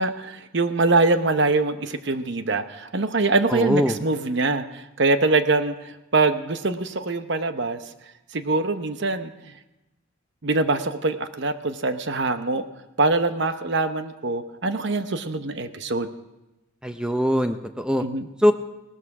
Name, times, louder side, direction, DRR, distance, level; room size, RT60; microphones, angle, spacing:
voice 1, 0.0-7.8 8.3-9.5 10.4-12.7 13.0-16.1 18.0-18.3, right 3 dB, 55° right, 10 dB, 0.9 m, -23 dB
voice 2, 3.5-4.0 16.8-18.0 18.4-18.5, equal, 5° right, 7 dB, 0.5 m, -21 dB
18.0 x 13.0 x 4.9 m, 1.0 s
head